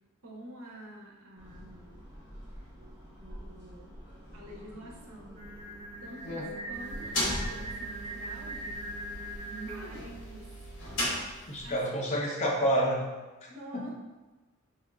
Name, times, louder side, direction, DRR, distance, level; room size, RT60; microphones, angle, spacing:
voice 1, 0.2-2.0 3.2-4.0 4.3-5.4 6.0-8.8 9.5-10.5 11.6-12.1 13.5-13.9, right 1 dB, 80° right, -2 dB, 0.7 m, -47 dB
sound 1, 1.4-9.4, equal, 10° right, 1.3 m, -50 dB
Singing, 5.4-10.1, right 2 dB, 25° right, 0.4 m, -41 dB
sound 2, 6.7-11.8, left 1 dB, 60° left, 0.9 m, -36 dB
voice 2, 11.5-13.1 13.4-13.9, equal, 30° left, -3 dB, 0.5 m, -29 dB
3.5 x 2.9 x 2.3 m, 1.2 s
head